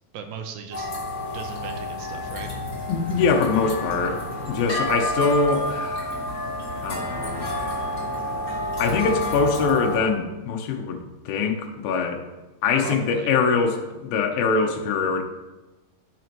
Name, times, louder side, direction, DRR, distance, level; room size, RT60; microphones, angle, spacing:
voice 1, 0.1-2.5 12.8-13.3, right 6 dB, 80° right, 6 dB, 2.3 m, -38 dB
sound 1, 0.7-10.0, left 1 dB, 25° left, 2.7 m, -29 dB
voice 2, 2.9-4.2 4.5-6.2 6.8-7.5 8.8-11.0 11.3-12.2 12.6-15.2, left 4 dB, 75° left, 3 dB, 2.7 m, -23 dB
16.5 x 6.1 x 3.0 m, 1.1 s
omnidirectional pair, 4.3 m